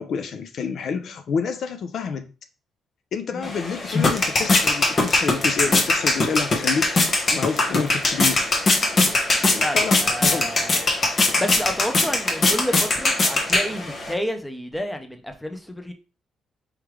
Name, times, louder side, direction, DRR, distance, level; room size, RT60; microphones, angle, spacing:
voice 1, 0.0-2.3 3.1-6.9 7.3-8.5 9.4-10.5, left 6 dB, 60° left, 0.5 m, -28 dB
sound 1, 3.4-14.1, left 2 dB, 45° left, 1.1 m, -21 dB
voice 2, 9.6-10.9 11.4-15.9, equal, 5° left, 0.8 m, -30 dB
4.8 x 3.4 x 3.2 m
cardioid pair, 90°, 0 cm